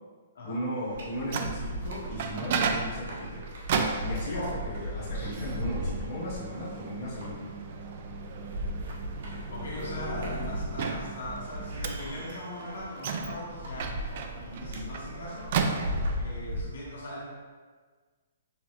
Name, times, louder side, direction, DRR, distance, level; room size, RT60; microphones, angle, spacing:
voice 1, 0.4-3.4 4.0-7.4, equal, 25° left, -9 dB, 1.0 m, -36 dB
Microwave oven, 0.9-16.4, right 5 dB, 35° right, 0.3 m, -35 dB
sound 1, 0.9-16.6, equal, 60° right, 0.9 m, -37 dB
sound 2, 6.5-11.1, left 1 dB, 15° right, 0.8 m, -41 dB
voice 2, 9.5-15.6 16.1-17.3, left 1 dB, 70° left, -5 dB, 1.5 m, -40 dB
6.5 x 2.3 x 3.1 m, 1.5 s
hypercardioid pair, 175°, 0 cm